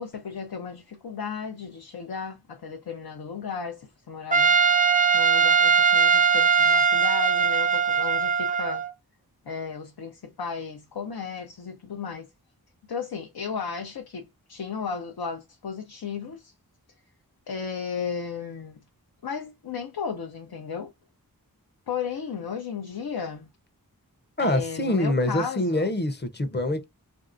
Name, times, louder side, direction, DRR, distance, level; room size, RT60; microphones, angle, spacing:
voice 1, 0.0-4.6 5.1-8.8 9.5-12.3 12.9-16.5 17.5-18.8 19.2-20.9 21.9-23.5 24.4-25.9, left 6 dB, 85° left, 0.7 m, -34 dB
Trumpet, 4.3-8.9, right 6 dB, 20° right, 0.5 m, -20 dB
voice 2, 24.4-26.8, left 1 dB, 30° left, 0.6 m, -25 dB
3.2 x 2.7 x 2.4 m
wide cardioid pair, 65°, 37 cm